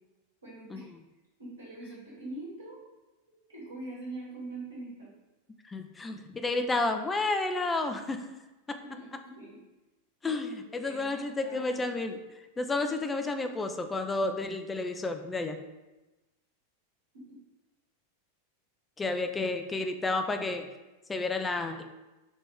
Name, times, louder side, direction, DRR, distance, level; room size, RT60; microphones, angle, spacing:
voice 1, 0.4-0.9 1.4-2.8 3.5-5.1 8.8-9.6 10.6-11.9 17.3-17.4, right 2 dB, 75° right, -7 dB, 1.2 m, -43 dB
voice 2, 5.6-8.3 8.7-8.8 10.2-12.2 12.6-15.6 19.0-20.7 21.1-21.8, left 2 dB, 15° left, 7 dB, 0.3 m, -31 dB
3.5 x 2.4 x 3.4 m, 1.1 s
figure-of-eight pair, 90°, 0 cm